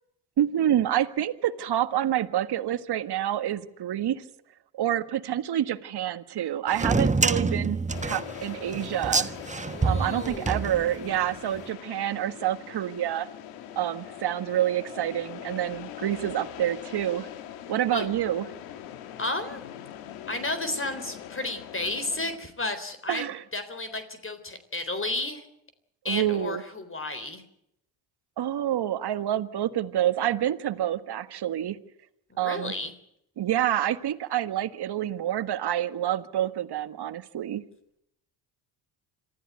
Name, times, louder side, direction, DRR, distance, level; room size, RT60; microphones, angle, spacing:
voice 1, 0.4-4.2 4.8-7.8 8.0-9.3 9.8-13.3 13.7-17.3 17.7-18.5 23.1-23.4 26.0-26.6 28.4-31.8 32.4-32.7 33.4-37.6, right 11 dB, 50° right, 12 dB, 1.6 m, -27 dB
sound 1, 6.7-11.3, right 3 dB, 15° right, 1.3 m, -27 dB
sound 2, 7.9-22.4, left 10 dB, 80° left, 2.4 m, -42 dB
voice 2, 9.7-10.7 17.9-18.1 19.2-19.6 20.3-23.2 23.5-25.5 26.0-27.4 32.3-32.9, left 2 dB, 25° left, 11 dB, 3.7 m, -32 dB
26.0 x 14.5 x 9.3 m, 0.77 s
hypercardioid pair, 60°, 50 cm